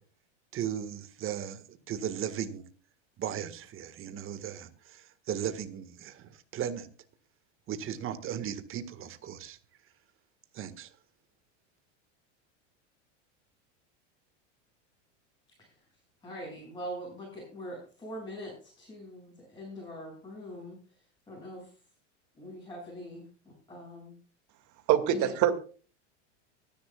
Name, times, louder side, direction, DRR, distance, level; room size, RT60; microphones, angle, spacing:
voice 1, 0.5-2.6 3.2-6.9 7.7-9.6 10.5-10.9, right 9 dB, 35° right, 10 dB, 1.9 m, -36 dB
voice 2, 16.2-20.8 21.3-21.7 22.4-24.1 25.1-25.3, equal, 10° left, -5 dB, 7.7 m, -42 dB
voice 3, 24.9-25.5, right 11 dB, 50° right, 9 dB, 2.4 m, -24 dB
24.5 x 11.0 x 2.4 m, 0.39 s
supercardioid pair, 120°, 36 cm